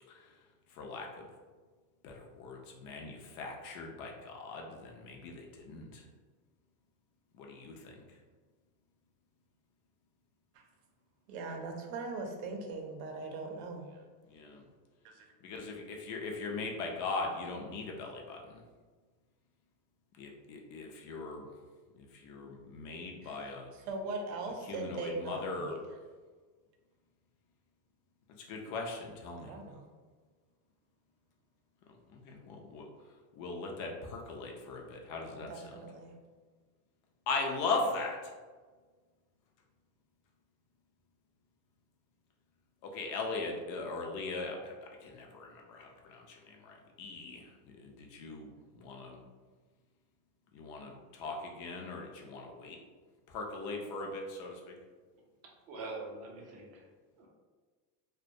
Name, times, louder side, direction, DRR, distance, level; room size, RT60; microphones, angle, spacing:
voice 1, 0.8-1.1 2.0-6.0 7.4-7.9 14.3-14.6 15.4-18.6 20.2-21.5 22.1-23.7 24.7-25.8 28.5-29.5 32.1-32.8 33.4-35.5 37.3-38.2 42.8-44.7 45.0-47.4 47.8-48.5 48.8-49.2 50.5-52.8 53.3-54.8, left 3 dB, 40° left, 1 dB, 0.4 m, -39 dB
voice 2, 11.3-14.0 15.0-15.3 23.2-25.8 29.4-29.9 35.3-36.1, right 3 dB, 75° right, 2 dB, 0.6 m, -40 dB
voice 3, 55.4-56.8 57.2-57.3, right 3 dB, 35° right, -1 dB, 0.4 m, -44 dB
2.2 x 2.1 x 2.6 m, 1.4 s
supercardioid pair, 135°, 49 cm